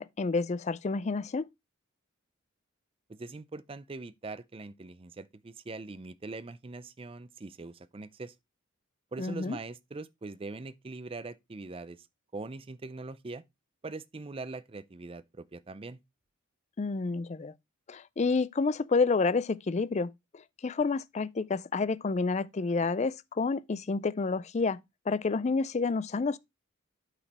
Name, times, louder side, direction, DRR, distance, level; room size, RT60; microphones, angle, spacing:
voice 1, 0.0-1.5 9.2-9.6 16.8-17.5 17.9-20.1 20.6-24.8 25.1-26.4, left 4 dB, 35° left, 0.4 m, -29 dB
voice 2, 3.1-8.3 9.1-12.1 12.3-13.4 13.8-16.0, right 3 dB, 25° right, 0.4 m, -42 dB
8.7 x 5.0 x 4.2 m
head